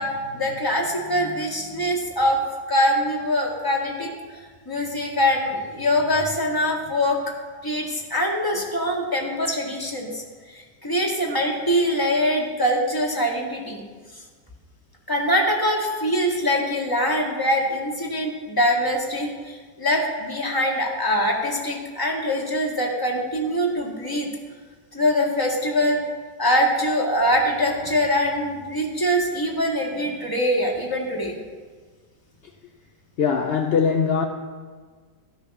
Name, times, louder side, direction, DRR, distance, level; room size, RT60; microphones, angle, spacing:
voice 1, 0.0-2.4 2.7-4.1 4.7-7.2 7.6-10.2 10.5-13.8 15.1-24.3 24.9-26.0 26.4-31.4, equal, 15° left, -2 dB, 1.9 m, -23 dB
voice 2, 33.2-34.3, left 6 dB, 55° left, 4 dB, 0.7 m, -21 dB
14.0 x 8.7 x 6.1 m, 1.5 s
omnidirectional pair, 1.8 m